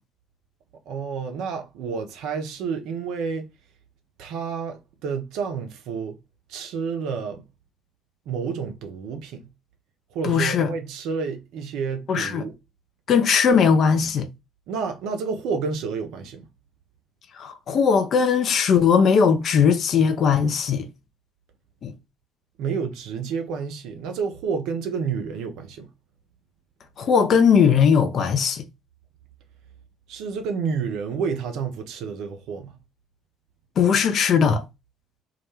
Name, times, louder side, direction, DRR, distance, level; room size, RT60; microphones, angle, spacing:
voice 1, 0.9-3.5 4.2-6.2 6.5-7.4 8.3-9.5 10.1-12.5 14.7-16.5 22.6-25.9 30.1-32.7, right 5 dB, 60° right, 0.5 m, -30 dB
voice 2, 10.2-10.7 12.1-12.4 13.1-14.3 17.4-20.9 21.8-21.9 27.0-28.6 33.8-34.6, left 6 dB, 50° left, 0.4 m, -19 dB
2.3 x 2.1 x 2.9 m
figure-of-eight pair, 50°, 0 cm